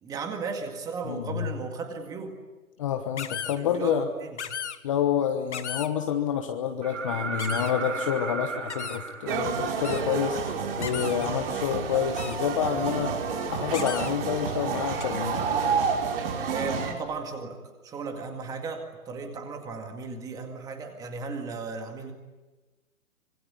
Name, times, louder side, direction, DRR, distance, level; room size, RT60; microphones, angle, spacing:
voice 1, 0.0-2.3 3.6-4.4 11.1-11.3 16.5-22.1, right 4 dB, 10° right, 5 dB, 2.0 m, -35 dB
voice 2, 1.1-1.5 2.8-4.1 4.8-13.2 13.5-15.8, left 8 dB, 25° left, 6 dB, 1.1 m, -28 dB
sound 1, 3.2-3.6 4.4-4.8 5.5-5.9 7.4-7.7 8.7-9.0 9.8-10.0 10.8-11.3 12.2-12.4 13.7-14.1 15.0-15.1, left 8 dB, 55° left, 1.6 m, -35 dB
sound 2, 6.8-10.6 12.5-12.6, right 4 dB, 60° right, 3.9 m, -35 dB
sound 3, 9.3-16.9, right 6 dB, 40° right, 5.1 m, -29 dB
25.5 x 22.0 x 9.8 m, 1.2 s
hypercardioid pair, 155°, 42 cm